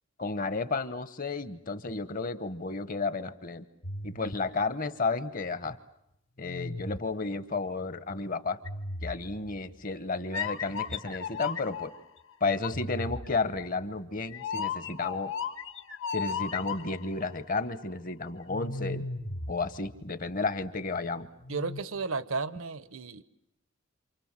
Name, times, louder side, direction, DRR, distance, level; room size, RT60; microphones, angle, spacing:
voice 1, 0.2-3.7 4.0-5.8 6.4-8.6 9.0-11.9 12.4-15.3 16.1-19.1 19.5-21.3, left 3 dB, 40° left, 13 dB, 1.1 m, -32 dB
sound 1, 3.8-5.6 6.4-7.4 8.6-9.6 10.3-12.0 12.6-17.1 18.5-20.3 21.4-21.8, left 4 dB, 60° left, 1.5 m, -36 dB
voice 2, 21.5-23.2, right 4 dB, 75° right, 15 dB, 1.0 m, -33 dB
28.0 x 28.0 x 7.5 m, 0.84 s
head